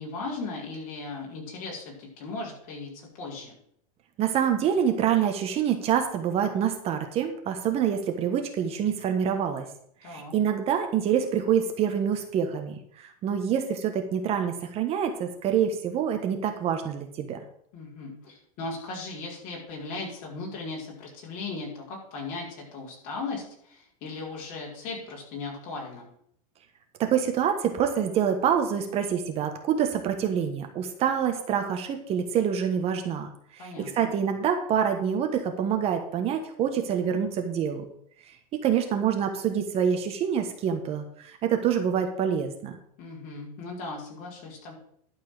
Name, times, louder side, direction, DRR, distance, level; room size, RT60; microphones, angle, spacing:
voice 1, 0.0-3.5 10.0-10.3 17.7-26.1 33.6-34.1 43.0-44.7, left 3 dB, 45° left, -3 dB, 5.3 m, -37 dB
voice 2, 4.2-9.7 10.0-17.4 27.0-37.8 38.3-42.8, right 8 dB, 35° right, 5 dB, 1.3 m, -26 dB
12.0 x 4.7 x 7.7 m, 0.67 s
supercardioid pair, 140°, 19 cm